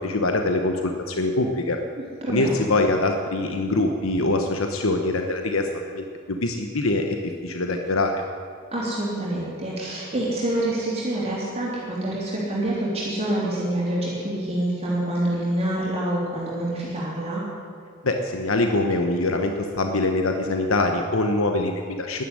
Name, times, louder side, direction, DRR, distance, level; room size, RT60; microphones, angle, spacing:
voice 1, 0.0-1.8 2.3-7.2 7.4-8.2 18.0-22.2, left 2 dB, 85° left, 4 dB, 1.1 m, -24 dB
voice 2, 2.2-2.5 8.7-17.4, right 1 dB, 30° right, -6 dB, 3.3 m, -26 dB
12.5 x 11.0 x 9.9 m, 2.2 s
head